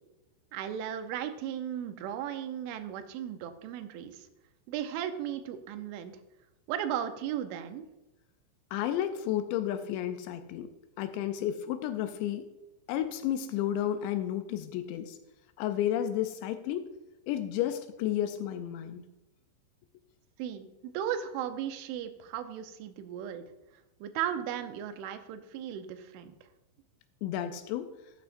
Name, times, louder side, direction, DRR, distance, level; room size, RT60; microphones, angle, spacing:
voice 1, 0.5-4.3 4.7-6.1 6.7-7.9 20.4-23.4 24.0-26.3, right 10 dB, 90° right, 8 dB, 3.2 m, -36 dB
voice 2, 8.7-10.7 11.0-12.5 12.9-15.2 15.6-16.9 17.3-19.1 27.2-27.9, left 11 dB, 85° left, 9 dB, 2.6 m, -32 dB
13.0 x 8.2 x 2.5 m, 0.98 s
omnidirectional pair, 5.4 m